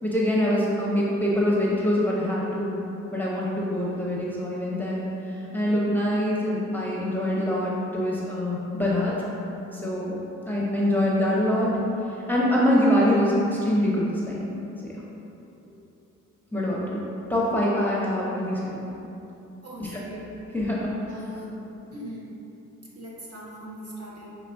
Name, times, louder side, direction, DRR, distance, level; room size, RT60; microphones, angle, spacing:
voice 1, 0.0-2.8 3.1-9.2 9.7-10.2 10.5-11.8 12.3-14.5 14.8-14.9 16.5-17.0 17.3-18.8 19.8-19.9 20.5-20.9, left 1 dB, 5° left, -6 dB, 0.7 m, -24 dB
voice 2, 19.6-20.3 21.0-21.6 21.9-22.3 22.9-24.3, right 1 dB, 50° right, -6 dB, 1.1 m, -40 dB
5.5 x 3.0 x 2.6 m, 2.9 s
cardioid pair, 75°, 32 cm